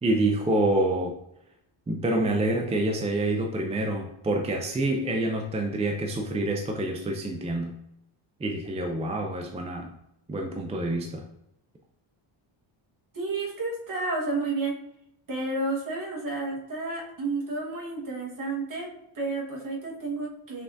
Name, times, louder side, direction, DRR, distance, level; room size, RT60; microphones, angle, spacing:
voice 1, 0.0-1.1 1.9-7.7 8.4-9.9 10.3-11.2, right 2 dB, 15° right, 2 dB, 0.3 m, -27 dB
voice 2, 13.1-14.7 15.3-18.9 19.1-20.6, right 3 dB, 40° right, -2 dB, 1.4 m, -31 dB
5.8 x 3.3 x 2.6 m, 0.79 s
cardioid pair, 125°, 49 cm